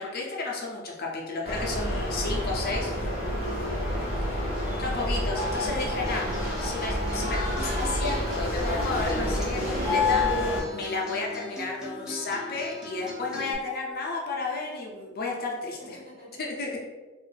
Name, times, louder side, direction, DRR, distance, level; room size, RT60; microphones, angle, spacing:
voice 1, 0.0-2.9 4.8-6.3 6.6-10.2 10.7-16.0 16.4-16.8, left 3 dB, 45° left, -2 dB, 0.6 m, -32 dB
sound 1, 1.4-10.6, left 1 dB, 30° right, 1.1 m, -28 dB
voice 2, 2.5-4.5 15.8-16.4, equal, 45° right, -7 dB, 1.4 m, -47 dB
Acoustic guitar, 5.5-13.5, left 1 dB, 5° right, 0.6 m, -41 dB
2.5 x 2.5 x 3.8 m, 1.3 s
head